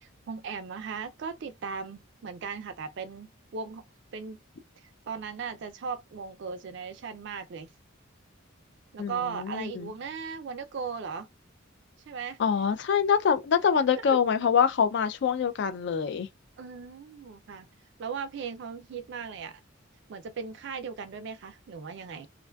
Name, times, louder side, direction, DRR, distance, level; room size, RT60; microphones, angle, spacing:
voice 1, 0.0-3.8 4.1-4.4 4.8-7.7 8.9-11.3 12.1-12.4 14.1-14.2 16.6-17.7 18.0-19.6 20.1-22.3, right 5 dB, 60° right, 0.4 m, -37 dB
voice 2, 9.0-9.9 12.4-16.3, left 7 dB, 60° left, 0.3 m, -25 dB
2.5 x 2.3 x 2.2 m
head